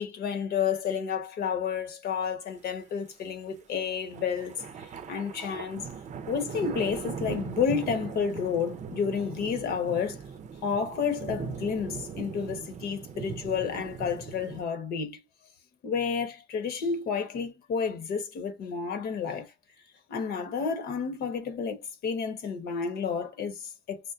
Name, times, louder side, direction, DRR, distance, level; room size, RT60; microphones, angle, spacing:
voice 1, 0.0-4.5 5.1-5.8 6.3-10.2 10.6-15.2 15.8-19.5 20.1-24.0, left 6 dB, 70° left, 1.3 m, -30 dB
sound 1, 4.1-14.6, right 6 dB, 45° right, 0.6 m, -39 dB
6.2 x 2.2 x 2.6 m
cardioid pair, 110°, 17 cm